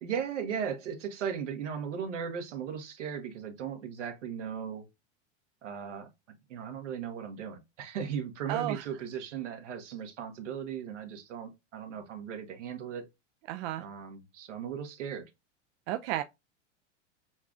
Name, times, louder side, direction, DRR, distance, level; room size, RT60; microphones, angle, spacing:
voice 1, 0.0-4.9 5.6-6.1 6.5-13.1 13.8-15.3, right 7 dB, 80° right, 1.4 m, -37 dB
voice 2, 8.5-8.8 13.5-13.8 15.9-16.2, right 14 dB, 55° right, 0.5 m, -32 dB
7.0 x 2.4 x 2.5 m
hypercardioid pair, 105°, 36 cm